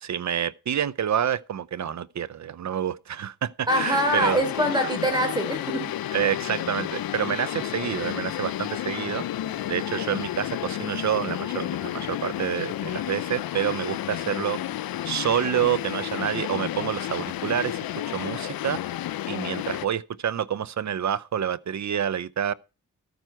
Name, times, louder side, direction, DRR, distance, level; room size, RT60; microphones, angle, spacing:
voice 1, 0.0-4.4 6.1-9.2 9.7-14.6 15.0-17.9 18.1-18.8 19.3-22.5, right 9 dB, 55° right, 0.6 m, -28 dB
sound 1, 3.7-19.9, left 12 dB, 80° left, 0.6 m, -31 dB
voice 2, 3.7-5.9, equal, 10° right, 3.7 m, -24 dB
13.5 x 9.2 x 4.5 m
wide cardioid pair, 110°, 35 cm